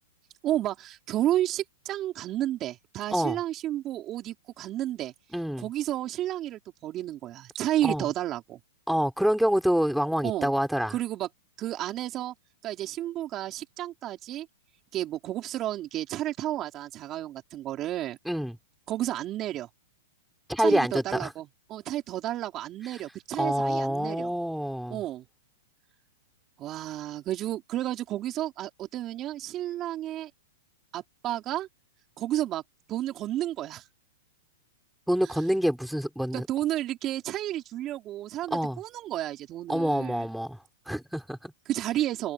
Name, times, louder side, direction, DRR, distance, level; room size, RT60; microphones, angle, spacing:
voice 1, 0.4-5.1 5.6-8.6 10.2-10.5 10.9-11.3 11.6-12.3 12.6-14.5 14.9-18.2 18.9-19.7 20.6-24.3 24.9-25.2 26.6-30.3 30.9-31.7 32.2-32.6 32.9-33.8 35.2-35.4 36.3-40.2 41.7-42.3, right 13 dB, 30° right, 4.2 m, -31 dB
voice 2, 5.3-5.7 7.8-8.0 8.9-10.9 18.3-18.5 20.5-21.3 23.4-25.0 35.1-36.5 38.5-38.8 39.7-40.6 40.9-41.5, equal, ahead, 4.7 m, -26 dB
hypercardioid pair, 140°, 0 cm